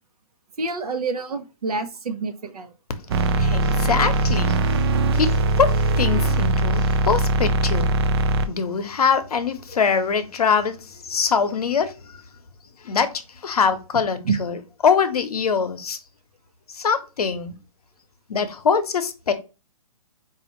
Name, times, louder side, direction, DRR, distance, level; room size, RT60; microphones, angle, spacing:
voice 1, 0.6-2.7 14.2-14.4, right 4 dB, 85° right, 0.9 m, -27 dB
voice 2, 3.1-4.8 5.1-7.9 8.5-10.8 11.0-12.2 12.8-13.1 13.4-14.6 14.8-16.0 16.7-17.5 18.3-19.3, left 6 dB, 85° left, 0.8 m, -23 dB
sound 1, 3.1-8.5, right 2 dB, 45° right, 0.4 m, -21 dB
4.8 x 2.5 x 2.9 m
hypercardioid pair, 145°, 19 cm